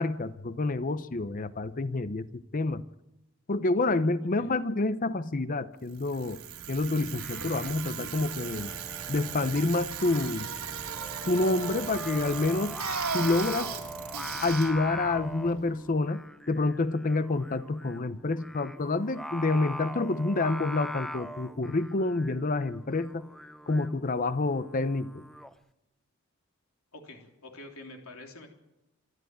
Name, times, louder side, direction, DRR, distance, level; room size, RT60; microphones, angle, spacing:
voice 1, 0.0-2.8 3.5-6.4 6.7-8.7 9.1-10.5 11.3-12.8 13.1-13.7 14.4-16.2 16.5-23.3 23.7-25.2, left 2 dB, 35° left, 13 dB, 0.7 m, -28 dB
Bicycle, 5.9-16.0, right 7 dB, 75° right, 3.3 m, -37 dB
Singing, 7.0-25.5, equal, ahead, 0.7 m, -42 dB
voice 2, 26.9-28.5, left 2 dB, 70° left, 2 dB, 3.5 m, -46 dB
26.5 x 11.0 x 9.3 m, 0.92 s
head